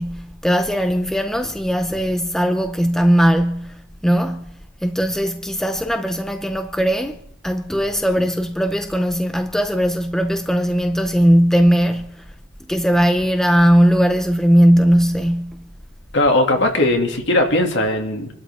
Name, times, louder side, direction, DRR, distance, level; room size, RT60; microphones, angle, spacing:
voice 1, 0.0-7.2 7.4-12.2 12.7-15.7, equal, ahead, 0.7 m, -18 dB
voice 2, 16.1-18.3, left 1 dB, 60° left, 2.5 m, -18 dB
27.0 x 12.5 x 3.7 m
head